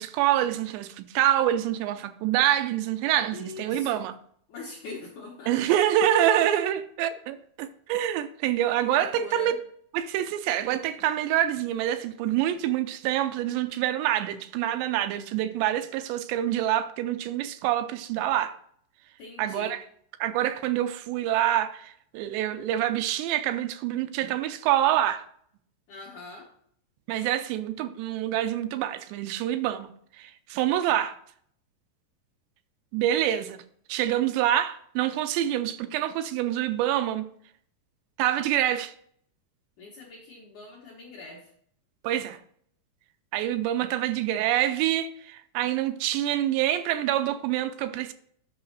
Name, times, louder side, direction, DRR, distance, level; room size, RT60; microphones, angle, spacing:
voice 1, 0.0-4.1 5.5-9.5 9.9-18.6 19.4-19.8 20.2-25.2 27.1-29.9 30.2-31.2 32.9-33.6 33.9-37.3 38.2-38.9 42.0-42.4 43.3-48.1, right 12 dB, 85° right, 2.6 m, -26 dB
voice 2, 3.3-4.0 4.5-5.7 8.8-9.6 19.2-19.8 25.9-26.5 39.8-41.5, left 3 dB, 70° left, 1.9 m, -42 dB
9.7 x 5.7 x 4.0 m
omnidirectional pair, 5.1 m